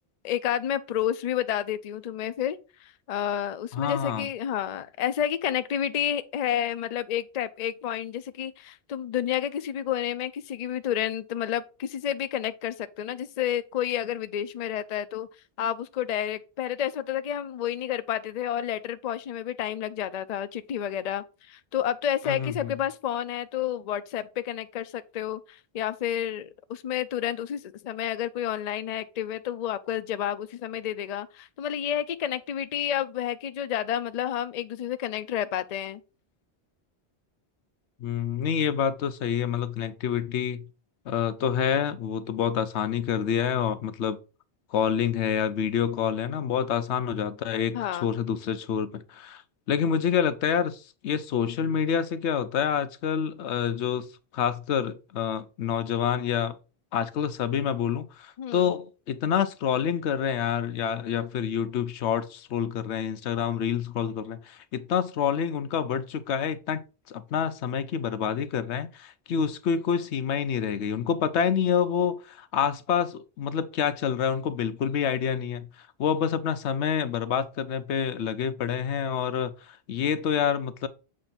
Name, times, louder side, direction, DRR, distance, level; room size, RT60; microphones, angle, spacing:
voice 1, 0.2-15.3 15.6-36.0 47.7-48.1 58.4-58.7, left 10 dB, 50° left, 0.5 m, -30 dB
voice 2, 3.7-4.3 22.2-22.7 38.0-40.6 41.1-44.2 44.7-49.4 49.7-54.1 54.3-56.6 56.9-66.8 67.1-80.9, left 8 dB, 85° left, 0.9 m, -27 dB
7.5 x 2.6 x 5.7 m
omnidirectional pair, 1.1 m